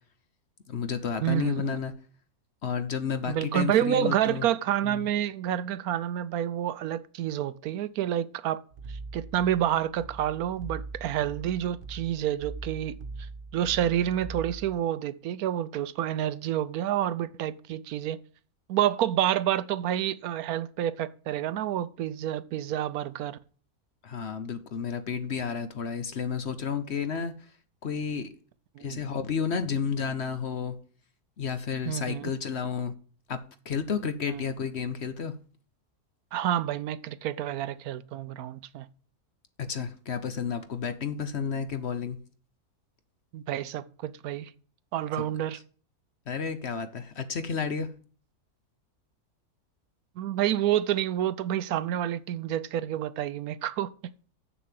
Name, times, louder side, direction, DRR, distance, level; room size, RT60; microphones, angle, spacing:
voice 1, 0.7-1.9 2.6-4.5 4.8-5.1 24.0-27.3 27.8-28.3 28.8-30.8 31.4-32.9 33.3-35.3 39.6-42.2 45.1-45.2 45.5-45.6 46.3-47.9, left 6 dB, 50° left, 1.0 m, -31 dB
voice 2, 1.2-1.8 3.3-8.6 8.9-13.3 13.5-18.2 18.7-23.4 28.8-29.0 31.9-32.3 34.3-34.4 36.3-38.9 43.3-44.5 44.9-45.6 50.2-53.9, right 11 dB, 75° right, 1.1 m, -29 dB
sound 1, 8.7-14.8, right 3 dB, 45° right, 0.8 m, -41 dB
7.2 x 6.9 x 7.6 m
omnidirectional pair, 1.6 m